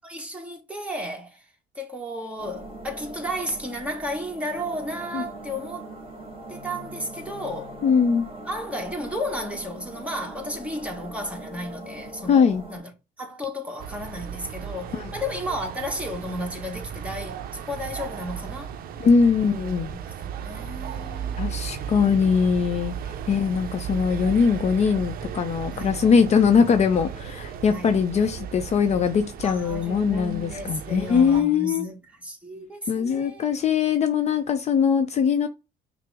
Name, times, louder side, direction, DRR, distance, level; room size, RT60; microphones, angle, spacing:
voice 1, 0.0-1.4 1.7-5.9 6.5-7.8 8.5-12.9 13.2-18.7 19.8-21.4 25.7-26.0 27.7-28.0 29.4-32.0 32.2-33.5, equal, 5° right, 1.2 m, -33 dB
sound 1, 2.4-12.8, right 1 dB, 35° right, 1.2 m, -41 dB
voice 2, 7.8-8.3 12.3-12.6 14.9-15.1 19.0-19.9 21.4-23.0 23.3-31.9 32.9-35.5, left 6 dB, 40° left, 0.5 m, -21 dB
sound 2, 13.8-31.4, right 8 dB, 60° right, 0.5 m, -35 dB
5.7 x 2.0 x 3.4 m
cardioid pair, 110°, 17 cm